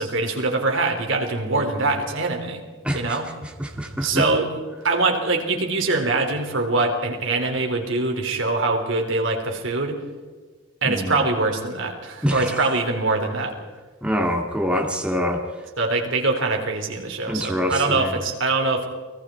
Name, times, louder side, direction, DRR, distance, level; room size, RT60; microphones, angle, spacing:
voice 1, 0.0-2.6 2.9-3.3 4.0-4.6 4.8-10.0 10.8-13.6 15.8-18.9, right 3 dB, 70° right, 2 dB, 3.9 m, -23 dB
voice 2, 2.8-3.2 3.6-4.2 10.8-11.1 12.2-12.4 14.0-15.4 17.3-18.1, equal, 5° right, 1 dB, 2.3 m, -24 dB
29.5 x 20.5 x 4.6 m, 1.4 s
head